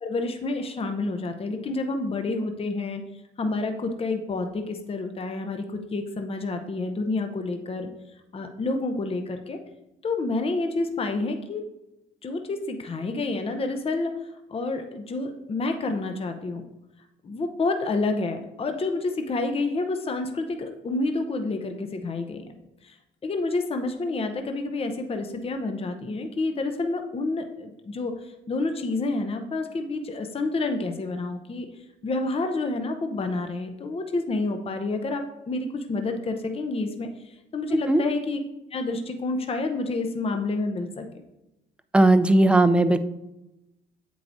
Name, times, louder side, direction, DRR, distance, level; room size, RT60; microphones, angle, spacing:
voice 1, 0.0-3.0 3.4-7.9 8.3-9.6 10.0-11.6 12.2-16.6 17.2-22.4 22.8-23.0 23.2-31.7 32.0-38.4 38.7-41.0, left 3 dB, 30° left, 6 dB, 0.6 m, -29 dB
voice 2, 41.9-43.0, right 2 dB, 5° right, 11 dB, 0.3 m, -17 dB
8.1 x 4.7 x 2.6 m, 0.95 s
cardioid pair, 90°, 20 cm